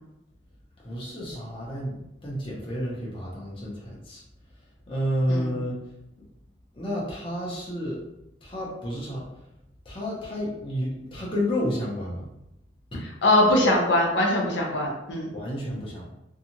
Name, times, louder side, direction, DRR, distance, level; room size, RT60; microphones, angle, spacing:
voice 1, 0.8-1.9 2.2-4.2 4.9-5.8 6.7-8.0 8.4-9.2 9.9-12.3 12.9-13.1 15.3-16.0, equal, 25° left, -5 dB, 0.7 m, -30 dB
voice 2, 13.2-15.3, left 1 dB, 70° left, -2 dB, 0.6 m, -22 dB
2.7 x 2.3 x 2.8 m, 0.87 s
head